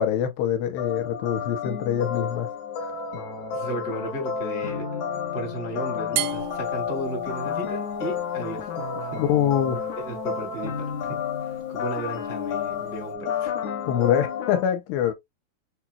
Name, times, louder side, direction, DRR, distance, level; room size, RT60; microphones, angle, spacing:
voice 1, 0.0-2.5 9.2-9.8 13.9-15.1, left 9 dB, 85° left, 2.9 m, -24 dB
sound 1, 0.8-14.6, left 7 dB, 65° left, 1.9 m, -31 dB
voice 2, 3.5-8.7 9.0-9.3 9.9-13.5, right 1 dB, 30° left, 1.5 m, -35 dB
sound 2, 6.2-13.1, right 15 dB, 85° right, 2.1 m, -38 dB
6.6 x 2.9 x 2.3 m
omnidirectional pair, 4.8 m